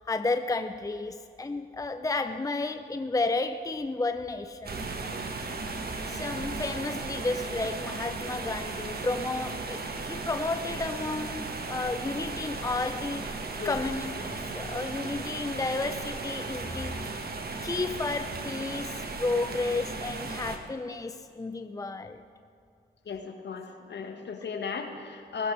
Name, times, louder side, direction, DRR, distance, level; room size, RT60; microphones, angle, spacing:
voice 1, 0.1-5.2 6.1-13.3 13.6-17.0 17.6-22.2, left 3 dB, 15° left, 9 dB, 0.7 m, -32 dB
sound 1, 4.6-20.6, right 3 dB, 50° right, 1.6 m, -36 dB
voice 2, 23.0-25.5, left 5 dB, 55° left, 5 dB, 1.7 m, -35 dB
20.0 x 15.5 x 3.4 m, 2.3 s
hypercardioid pair, 40°, 21 cm